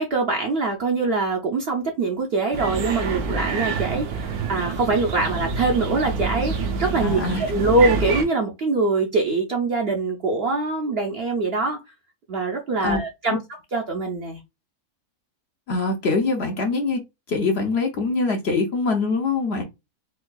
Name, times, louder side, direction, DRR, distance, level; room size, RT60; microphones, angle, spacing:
voice 1, 0.0-11.8 12.3-13.4 13.7-14.4, right 3 dB, 55° right, 0.7 m, -23 dB
sound 1, 2.5-8.2, right 4 dB, 80° right, 1.2 m, -27 dB
voice 2, 7.0-7.4 12.8-13.0 15.7-17.0 17.3-19.6, left 3 dB, 55° left, 0.9 m, -23 dB
4.5 x 2.4 x 2.3 m
omnidirectional pair, 1.6 m